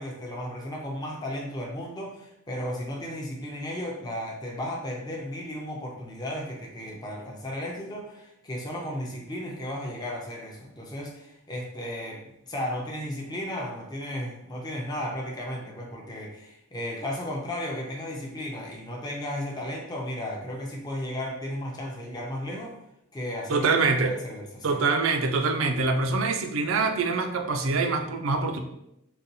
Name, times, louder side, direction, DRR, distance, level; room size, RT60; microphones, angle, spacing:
voice 1, 0.0-22.8 23.1-23.7 24.0-24.8, left 1 dB, 20° left, -1 dB, 0.5 m, -34 dB
voice 2, 23.5-24.2 24.6-28.6, right 4 dB, 65° right, 5 dB, 0.4 m, -24 dB
4.1 x 2.3 x 2.6 m, 0.81 s
head